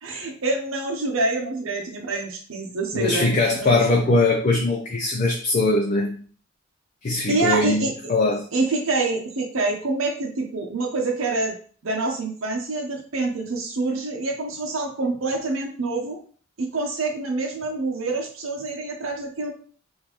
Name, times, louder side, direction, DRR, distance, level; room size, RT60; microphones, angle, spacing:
voice 1, 0.0-4.2 7.3-8.1 8.5-11.5 11.8-16.2 16.6-19.5, right 3 dB, 75° right, 1 dB, 0.8 m, -26 dB
voice 2, 2.9-6.2 7.0-7.8 8.1-8.4, left 2 dB, 35° left, -1 dB, 0.5 m, -21 dB
3.7 x 2.6 x 3.0 m, 0.43 s
head